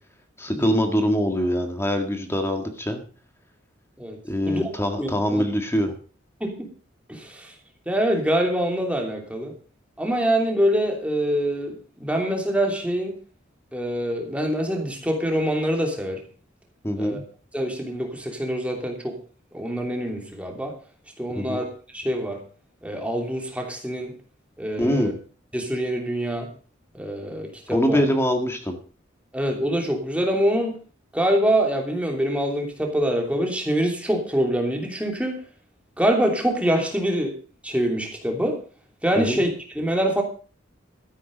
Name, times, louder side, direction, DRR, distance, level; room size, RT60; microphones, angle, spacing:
voice 1, 0.4-3.0 4.2-5.9 16.8-17.2 21.3-21.6 24.8-25.1 27.7-28.8 39.2-39.4, equal, 15° left, 5 dB, 1.8 m, -23 dB
voice 2, 5.0-5.4 6.4-6.7 7.1-7.5 7.9-9.5 10.0-13.1 13.7-16.2 17.0-17.2 17.5-19.2 19.5-20.7 21.2-21.6 21.9-22.4 22.8-24.1 24.6-25.1 25.5-26.5 26.9-28.0 29.3-30.8 31.1-35.4 36.0-37.3 37.6-38.6 39.0-39.5 39.7-40.2, right 1 dB, 5° right, 2 dB, 3.1 m, -25 dB
13.0 x 9.9 x 5.1 m, 0.39 s
head